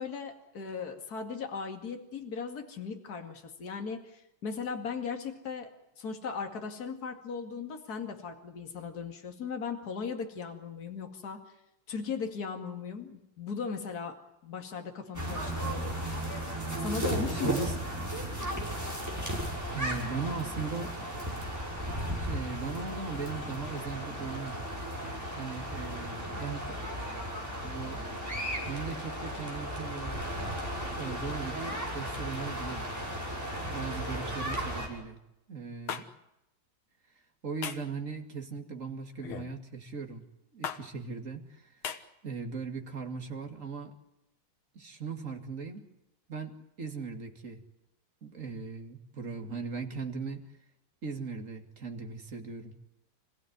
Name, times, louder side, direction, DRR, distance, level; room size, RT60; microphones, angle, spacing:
voice 1, 0.0-5.7 6.0-11.4 11.9-14.2 14.4-16.0 16.8-17.7, left 5 dB, 50° left, 4 dB, 2.8 m, -37 dB
sound 1, 15.1-34.9, equal, 10° right, 5.9 m, -35 dB
voice 2, 17.3-17.8 19.7-20.9 22.1-24.7 25.4-26.8 27.6-28.1 28.7-30.5 30.9-32.9 33.6-35.2 35.5-36.1 37.4-40.2 40.5-41.8 42.2-43.9 44.7-45.9 46.3-47.6 48.2-50.5 51.0-52.8, right 5 dB, 40° right, 4 dB, 2.8 m, -38 dB
sound 2, 35.9-36.0 37.6-37.9 39.2-39.5 40.6-40.8 41.8-42.0, left 8 dB, 90° left, 2.2 m, -36 dB
27.5 x 16.0 x 9.6 m, 0.88 s
omnidirectional pair, 2.2 m